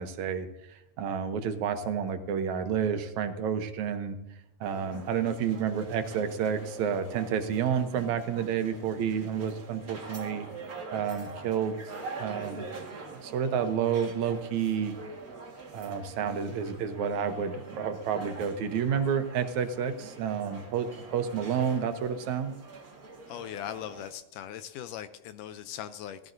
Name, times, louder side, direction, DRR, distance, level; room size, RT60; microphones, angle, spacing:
voice 1, 0.0-4.2 4.6-10.5 10.9-11.8 12.2-12.7 13.1-14.9 15.7-22.5, right 7 dB, 70° right, 8 dB, 2.1 m, -30 dB
sound 1, 4.6-24.1, right 3 dB, 35° right, 1.6 m, -44 dB
voice 2, 23.3-26.2, left 10 dB, 80° left, 11 dB, 2.1 m, -39 dB
17.0 x 15.0 x 2.6 m, 0.90 s
omnidirectional pair, 3.8 m